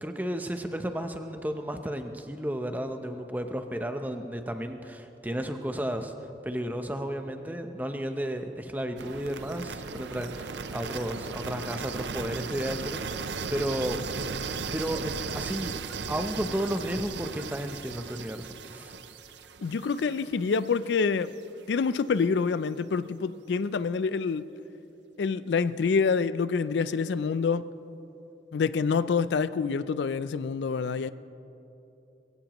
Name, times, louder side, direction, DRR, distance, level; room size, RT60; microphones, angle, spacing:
voice 1, 0.0-6.1 6.4-14.0 14.7-15.8 16.1-19.0, equal, 10° right, 0.7 m, -33 dB
sound 1, 9.0-20.9, right 5 dB, 80° right, 0.6 m, -37 dB
voice 2, 19.6-21.3 21.7-24.5 25.2-27.7 28.5-31.1, left 5 dB, 75° left, 0.4 m, -27 dB
21.0 x 16.0 x 3.0 m
head